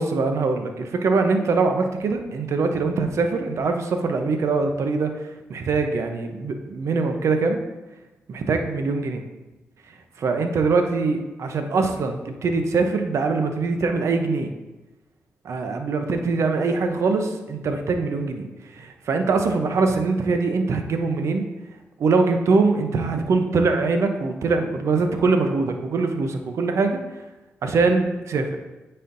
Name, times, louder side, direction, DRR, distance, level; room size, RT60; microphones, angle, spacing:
voice 1, 0.0-5.1 5.5-7.6 8.3-9.2 10.2-14.5 15.4-18.5 18.8-21.4 22.0-27.0 27.6-28.6, right 4 dB, 70° right, 6 dB, 0.6 m, -23 dB
8.9 x 4.3 x 2.6 m, 1.1 s
cardioid pair, 60°, 5 cm